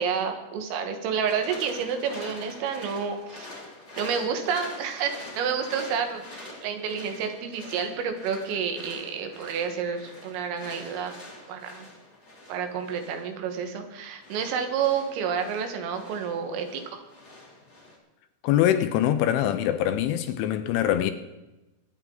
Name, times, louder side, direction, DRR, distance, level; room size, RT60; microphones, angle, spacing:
voice 1, 0.0-3.5 4.0-11.2 11.5-11.9 12.5-17.0, right 7 dB, 80° right, 4.1 m, -29 dB
sound 1, 1.3-18.0, left 2 dB, 20° left, 2.0 m, -45 dB
voice 2, 18.4-21.1, left 11 dB, 80° left, 3.0 m, -23 dB
22.5 x 9.8 x 3.9 m
omnidirectional pair, 5.9 m